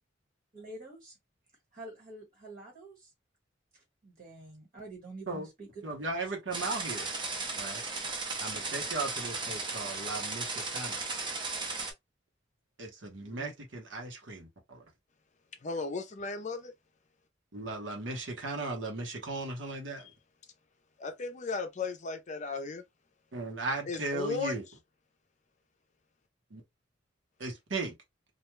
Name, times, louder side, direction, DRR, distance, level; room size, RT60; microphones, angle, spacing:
voice 1, 0.5-1.2 1.7-3.1 3.7-5.8 6.1-6.3, right 2 dB, 50° right, 1.5 m, -47 dB
voice 2, 5.8-7.1 7.5-7.8 8.4-11.1 12.8-14.8 17.5-20.1 23.3-24.6 26.5-26.6 27.4-27.9, right 3 dB, 80° right, 1.0 m, -37 dB
sound 1, 6.5-11.9, right 3 dB, 25° right, 0.7 m, -36 dB
voice 3, 13.2-13.5 15.6-16.7 20.0-20.1 21.0-22.8 23.9-24.5, left 4 dB, 40° left, 0.5 m, -36 dB
2.4 x 2.2 x 3.0 m
head